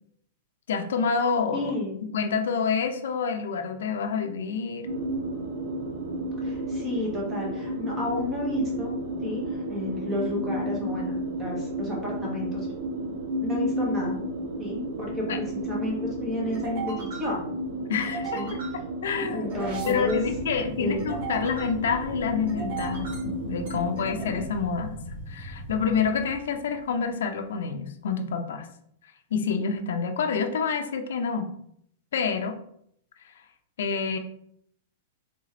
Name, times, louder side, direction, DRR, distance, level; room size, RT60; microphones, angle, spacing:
voice 1, 0.7-1.7 2.1-4.9 15.3-15.4 17.9-18.4 19.0-19.5 19.9-25.0 25.3-28.7 29.3-31.5 32.1-32.5 33.8-34.2, left 6 dB, 80° left, 6 dB, 0.7 m, -27 dB
voice 2, 1.5-2.0 6.4-8.9 9.2-12.7 13.4-14.2 14.6-17.4 18.3-18.5 19.3-20.2 20.8-21.1, left 1 dB, 15° right, -3 dB, 1.4 m, -31 dB
sound 1, 4.8-24.4, right 1 dB, 80° right, 0.8 m, -32 dB
sound 2, 14.4-26.9, right 2 dB, 60° right, 1.8 m, -39 dB
3.7 x 3.7 x 3.4 m, 0.69 s
supercardioid pair, 160°, 0 cm